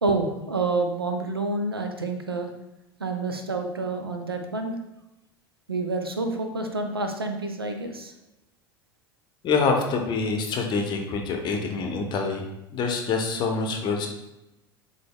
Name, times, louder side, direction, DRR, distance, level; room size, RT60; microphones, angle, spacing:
voice 1, 0.0-2.5 3.0-4.8 5.7-8.1, right 3 dB, 90° right, 6 dB, 0.4 m, -28 dB
voice 2, 9.4-14.1, left 4 dB, 35° left, 3 dB, 0.7 m, -26 dB
3.9 x 3.4 x 2.2 m, 0.95 s
figure-of-eight pair, 75°, 12 cm